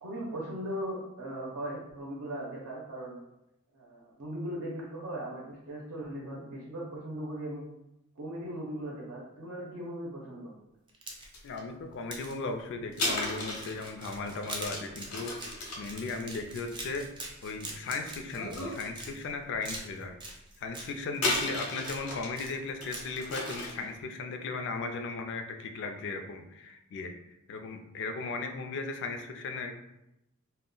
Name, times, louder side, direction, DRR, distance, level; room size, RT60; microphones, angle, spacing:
voice 1, 0.0-3.2 3.7-7.6 8.2-10.5, right 1 dB, 75° right, -3 dB, 0.6 m, -38 dB
sound 1, 10.9-11.5 12.1-12.3 12.9-19.3 19.6-20.9 21.3-22.0 22.4-23.2 23.5-23.6, right 2 dB, 20° right, 0.4 m, -43 dB
sound 2, 11.3-11.6 12.9-17.7 18.3-18.9 19.3-19.4 21.1-22.4 22.8-23.9, left 2 dB, 85° left, 0.7 m, -35 dB
voice 2, 11.4-15.4 15.8-17.1 17.4-20.2 20.6-27.1 27.5-29.7, left 3 dB, 55° left, 5 dB, 0.3 m, -36 dB
2.2 x 2.0 x 3.7 m, 0.88 s
head